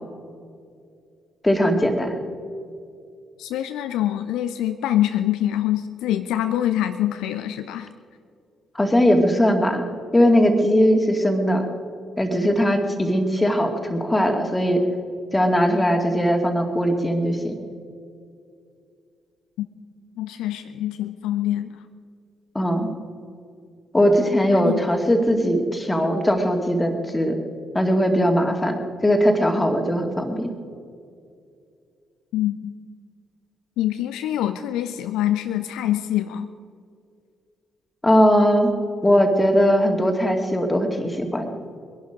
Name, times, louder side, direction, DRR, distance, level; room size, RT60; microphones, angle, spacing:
voice 1, 1.4-2.2 8.7-9.8 10.1-11.6 12.2-14.8 15.3-17.5 22.5-22.9 23.9-27.4 27.7-28.8 29.0-30.5 38.0-38.7 39.0-41.5, equal, 15° left, 4 dB, 2.3 m, -19 dB
voice 2, 3.4-7.9 19.6-19.7 20.2-21.8 24.5-24.9 32.3-32.7 33.8-36.5, left 12 dB, 65° left, 10 dB, 0.5 m, -25 dB
22.0 x 11.5 x 5.1 m, 2.4 s
figure-of-eight pair, 40°, 0 cm